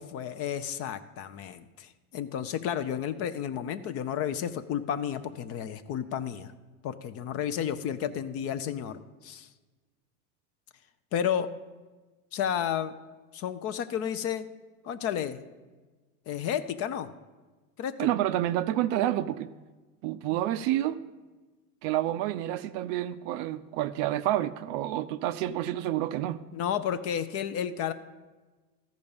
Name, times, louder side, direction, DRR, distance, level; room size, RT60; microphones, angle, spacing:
voice 1, 0.0-6.5 6.8-9.5 11.1-11.5 12.3-12.9 13.3-14.4 14.8-15.4 16.3-17.1 17.8-18.1 26.5-27.9, left 9 dB, 35° left, 0.5 m, -32 dB
voice 2, 18.0-19.5 20.0-21.0 21.8-26.4, right 13 dB, 45° right, 0.4 m, -29 dB
13.5 x 5.2 x 7.0 m
supercardioid pair, 120°, 44 cm